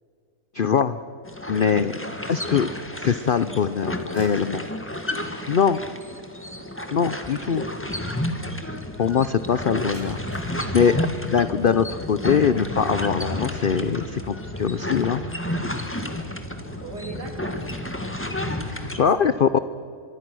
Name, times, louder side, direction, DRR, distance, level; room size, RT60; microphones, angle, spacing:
voice 1, 0.5-1.0 1.5-2.0 2.3-2.7 3.0-4.6 5.5-5.8 6.9-7.6 9.0-10.2 10.5-15.2 18.7-19.6, left 7 dB, 70° left, 13 dB, 0.5 m, -22 dB
sound 1, 1.3-19.0, left 1 dB, 10° left, 1.5 m, -31 dB
sound 2, 4.0-7.1 9.9-11.1, equal, 70° right, 5.9 m, -52 dB
voice 2, 16.8-18.1 19.0-19.6, right 3 dB, 85° right, 4 dB, 3.5 m, -39 dB
25.0 x 23.0 x 6.3 m, 2.5 s
omnidirectional pair, 1.7 m